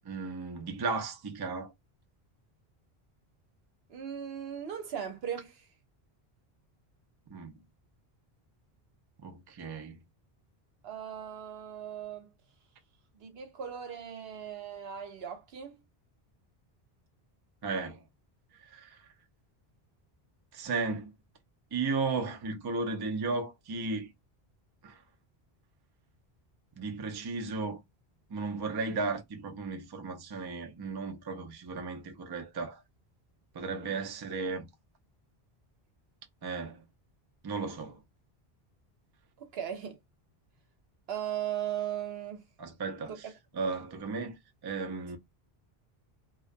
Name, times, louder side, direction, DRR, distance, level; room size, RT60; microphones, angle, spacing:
voice 1, 0.0-1.7 7.3-7.6 9.2-10.0 17.6-18.0 18.6-19.1 20.5-21.1 21.7-24.1 24.8-25.0 26.8-27.8 28.3-32.8 33.5-34.7 36.4-36.9 37.4-38.0 42.6-43.3 43.5-44.4 44.6-45.2, right 4 dB, 35° right, 0.4 m, -35 dB
voice 2, 3.9-5.7 10.8-12.3 13.1-15.8 33.8-34.1 39.4-40.0 41.1-42.4 43.1-43.3, right 9 dB, 75° right, 0.9 m, -38 dB
2.4 x 2.2 x 2.4 m
omnidirectional pair, 1.0 m